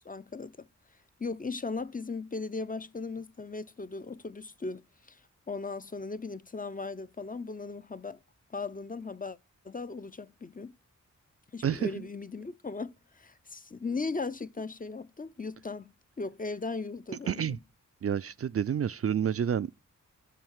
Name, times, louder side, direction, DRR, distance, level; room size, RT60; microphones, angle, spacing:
voice 1, 0.0-0.7 1.2-5.2 5.5-8.2 8.5-9.4 9.6-10.7 11.5-17.6, left 4 dB, 25° left, 0.6 m, -37 dB
voice 2, 17.3-17.6 18.0-19.7, right 8 dB, 45° right, 0.4 m, -29 dB
7.7 x 5.7 x 7.1 m
cardioid pair, 50°, 32 cm